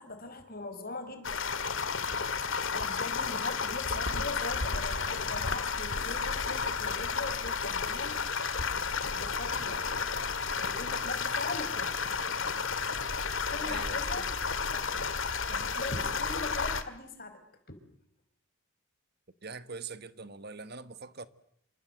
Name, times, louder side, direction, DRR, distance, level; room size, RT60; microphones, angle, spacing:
voice 1, 0.0-1.4 2.7-8.7 9.1-9.8 10.6-12.1 13.5-17.4, left 2 dB, 40° left, 4.7 m, -41 dB
sound 1, 1.2-16.8, left 5 dB, 60° left, 2.0 m, -32 dB
voice 2, 13.6-14.3 15.6-15.7 19.4-21.3, right 4 dB, 45° right, 1.4 m, -43 dB
28.0 x 26.0 x 7.8 m
head